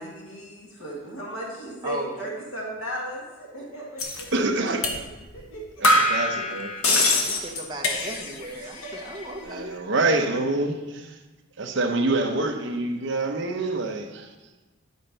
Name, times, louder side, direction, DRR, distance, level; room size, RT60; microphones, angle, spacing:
voice 1, 0.0-4.3 4.7-5.6 7.0-7.1 8.8-8.9, right 1 dB, 70° left, -4 dB, 1.8 m, -36 dB
voice 2, 1.8-2.3 4.6-4.8 6.8-9.8, right 1 dB, 20° right, 0 dB, 1.0 m, -36 dB
sound 1, 4.0-4.2 4.8-5.0 5.3-5.4 5.8-8.5 8.7-9.3, left 1 dB, 90° left, 1.2 m, -23 dB
voice 3, 4.3-4.9 5.8-6.7 9.4-11.1 11.6-14.3, right 2 dB, 55° right, 4 dB, 0.8 m, -26 dB
10.5 x 4.4 x 5.3 m, 1.2 s
head